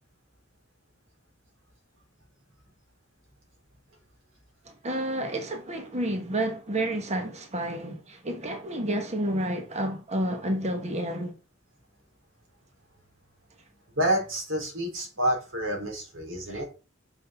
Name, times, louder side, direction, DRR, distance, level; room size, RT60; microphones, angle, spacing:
voice 1, 4.6-11.3 16.5-16.6, right 1 dB, 35° right, 1.3 m, -30 dB
voice 2, 14.0-16.6, right 1 dB, 75° right, 4.0 m, -28 dB
6.4 x 6.3 x 7.0 m
head